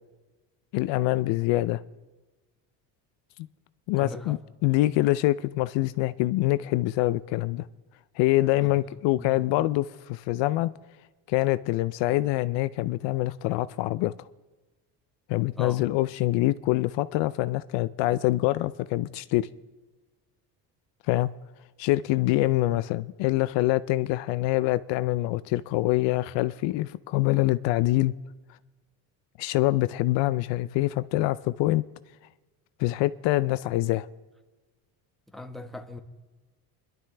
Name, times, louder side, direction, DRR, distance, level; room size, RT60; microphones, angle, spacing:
voice 1, 0.7-1.8 3.9-7.7 8.2-10.7 11.3-14.1 15.3-19.5 21.1-21.3 21.8-28.1 29.4-31.8 32.8-34.1, left 17 dB, 75° left, 0.5 m, -25 dB
voice 2, 4.0-4.4 8.6-8.7 9.2-9.4 15.6-15.8 35.3-36.0, left 2 dB, ahead, 1.3 m, -39 dB
25.0 x 12.0 x 3.3 m
supercardioid pair, 95°, 44 cm